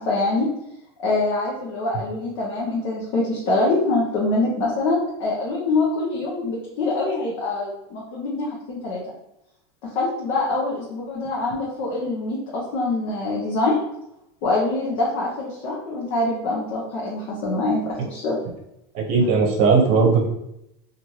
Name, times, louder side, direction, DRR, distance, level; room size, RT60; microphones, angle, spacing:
voice 1, 0.1-0.5 1.0-9.0 9.9-13.8 14.4-18.4, left 2 dB, 60° left, -4 dB, 0.7 m, -24 dB
voice 2, 18.9-20.3, right 4 dB, 50° right, 0 dB, 0.8 m, -18 dB
3.0 x 2.5 x 2.8 m, 0.84 s
supercardioid pair, 140°, 14 cm